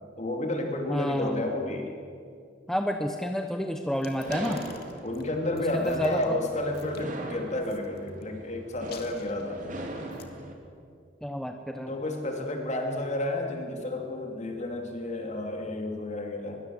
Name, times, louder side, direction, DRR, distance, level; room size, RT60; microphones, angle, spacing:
voice 1, 0.2-1.9 5.0-9.6 11.9-16.6, left 1 dB, 35° left, 3 dB, 3.2 m, -31 dB
voice 2, 0.9-1.4 2.7-4.6 5.7-6.4 11.2-11.9, equal, ahead, 4 dB, 1.1 m, -30 dB
sound 1, 4.0-6.3 6.7-7.1 7.6-8.2 8.7-10.3, left 8 dB, 55° left, 2.3 m, -51 dB
sound 2, 4.2-10.5, right 1 dB, 40° right, 3.4 m, -40 dB
24.0 x 22.0 x 8.0 m, 2.3 s
head